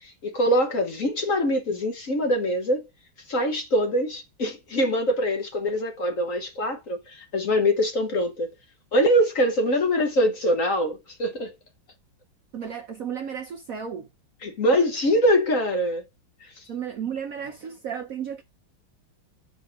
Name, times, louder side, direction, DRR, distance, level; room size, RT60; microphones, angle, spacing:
voice 1, 0.0-2.9 3.3-8.5 8.9-11.5 14.4-16.0, equal, 50° left, 1.2 m, -23 dB
voice 2, 12.5-14.1 16.7-18.4, right 8 dB, 60° right, 0.9 m, -33 dB
7.0 x 4.0 x 5.1 m
omnidirectional pair, 2.2 m